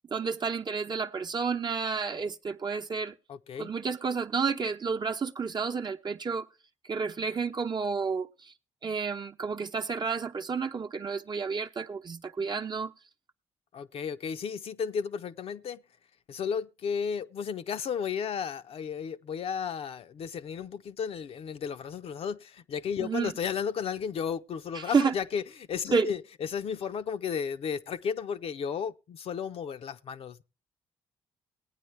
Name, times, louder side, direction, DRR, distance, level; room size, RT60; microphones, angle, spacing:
voice 1, 0.1-3.1 3.6-6.5 6.9-8.3 8.8-12.9 23.0-23.3 24.7-25.1 25.9-26.1, right 5 dB, 40° right, 0.9 m, -30 dB
voice 2, 3.3-3.7 13.7-15.8 16.3-30.4, left 7 dB, 60° left, 0.7 m, -34 dB
18.0 x 9.3 x 3.2 m
hypercardioid pair, 50°, 11 cm